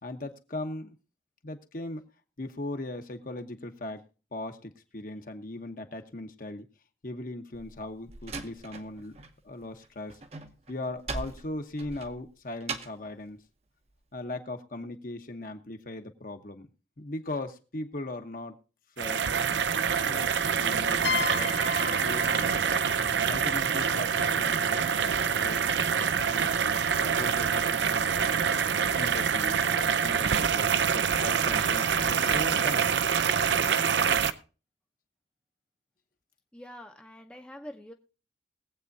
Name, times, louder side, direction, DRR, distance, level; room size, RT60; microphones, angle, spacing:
voice 1, 0.0-0.9 1.4-2.0 2.4-4.0 4.3-6.7 7.0-9.2 9.4-10.2 10.7-13.4 14.1-16.7 17.0-18.6 19.0-19.2 19.6-19.7 20.0-22.7 23.3-28.5 28.9-29.6 30.0-32.9, left 2 dB, 50° left, 6 dB, 1.1 m, -39 dB
Slam, 7.5-9.4 9.6-13.1, right 3 dB, 35° right, 0.8 m, -40 dB
sound 1, 19.0-34.3, right 7 dB, 80° right, 0.6 m, -26 dB
sound 2, 21.0-24.7, left 6 dB, 75° left, 0.5 m, -35 dB
voice 2, 36.5-37.9, equal, 5° left, 3 dB, 0.7 m, -45 dB
21.5 x 8.2 x 2.7 m, 0.34 s
head